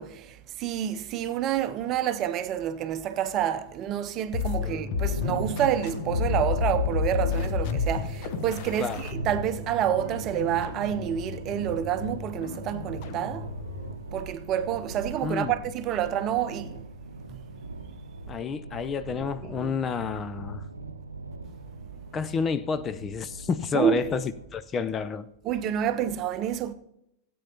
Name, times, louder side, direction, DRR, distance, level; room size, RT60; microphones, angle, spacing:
voice 1, 0.0-13.5 14.1-16.8 17.3-17.5 19.4-19.8 23.7-24.1 25.4-26.7, right 10 dB, 35° right, 0.7 m, -28 dB
sound 1, 4.3-14.0, left 8 dB, 45° left, 0.9 m, -32 dB
sound 2, 4.9-24.4, right 2 dB, 80° right, 0.7 m, -39 dB
voice 2, 15.2-15.6 18.3-20.6 22.1-24.2 24.5-25.3, left 6 dB, 25° left, 0.5 m, -30 dB
17.0 x 8.5 x 2.8 m
figure-of-eight pair, 90°, 0 cm